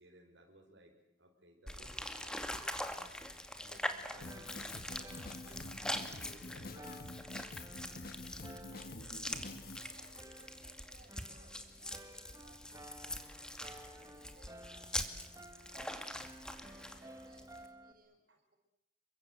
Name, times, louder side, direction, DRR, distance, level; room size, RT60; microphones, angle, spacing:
voice 1, 0.0-3.3 3.6-5.1 5.4-6.7 9.3-9.6 11.5-11.6 18.3-18.4, right 1 dB, 85° right, 1 dB, 5.5 m, -61 dB
sound 1, 1.7-17.7, left 1 dB, 5° left, 2.2 m, -44 dB
Drum kit, 4.2-9.8, left 2 dB, 55° left, 1.5 m, -48 dB
sound 2, 4.3-17.9, right 1 dB, 20° right, 1.7 m, -55 dB
voice 2, 8.6-15.2 16.5-18.2, right 1 dB, 50° right, 4 dB, 6.6 m, -65 dB
28.5 x 24.0 x 8.1 m, 0.80 s
head